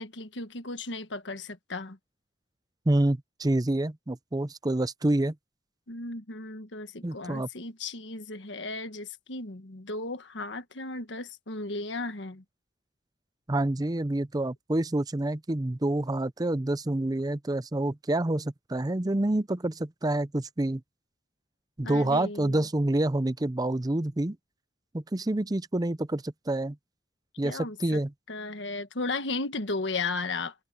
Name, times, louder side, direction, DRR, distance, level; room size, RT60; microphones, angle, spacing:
voice 1, 0.0-2.0 5.9-12.4 21.8-22.7 27.4-28.0 28.3-30.5, left 3 dB, 80° left, 1.5 m, -35 dB
voice 2, 2.9-5.3 7.0-7.5 13.5-20.8 21.8-24.4 24.9-26.8 27.4-28.1, right 1 dB, 20° right, 0.6 m, -27 dB
head